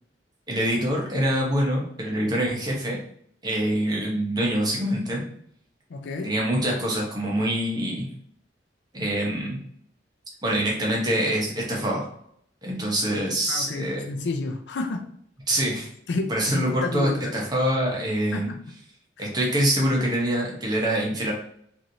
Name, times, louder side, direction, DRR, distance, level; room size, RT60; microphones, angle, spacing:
voice 1, 0.5-3.0 3.4-5.2 6.2-8.1 8.9-9.6 10.4-12.1 12.6-14.0 15.5-15.9 16.3-18.5 19.2-21.3, right 1 dB, 25° right, -2 dB, 0.8 m, -25 dB
voice 2, 5.9-6.4 13.5-15.1 15.5-15.6 16.1-17.3 18.3-18.6 19.2-19.3, left 3 dB, 70° left, 5 dB, 0.4 m, -30 dB
3.1 x 2.5 x 2.6 m, 0.67 s
head